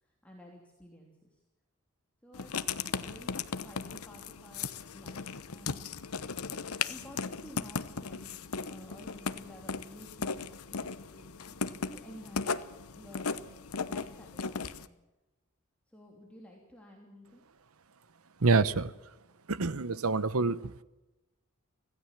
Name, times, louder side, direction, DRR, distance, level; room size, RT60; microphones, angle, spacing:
voice 1, 0.0-1.4 2.2-5.9 6.5-12.5 12.9-13.3 13.7-14.9 15.9-17.4, left 1 dB, 5° left, -2 dB, 3.1 m, -52 dB
Writing, 2.3-14.9, left 5 dB, 85° left, 1.0 m, -37 dB
voice 2, 18.4-18.9 19.5-20.8, right 3 dB, 80° right, 16 dB, 1.0 m, -27 dB
25.5 x 16.5 x 7.5 m, 1.0 s
head